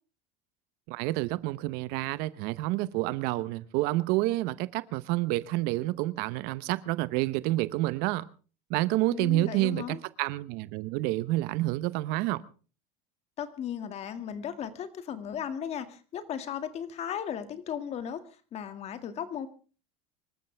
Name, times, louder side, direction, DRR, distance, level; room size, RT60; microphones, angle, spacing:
voice 1, 0.9-8.3 8.7-12.4, right 18 dB, 60° right, 0.8 m, -29 dB
voice 2, 9.1-10.0 13.4-18.2 18.5-19.5, left 8 dB, 35° left, 2.1 m, -36 dB
25.5 x 13.5 x 3.4 m
supercardioid pair, 140°, 18 cm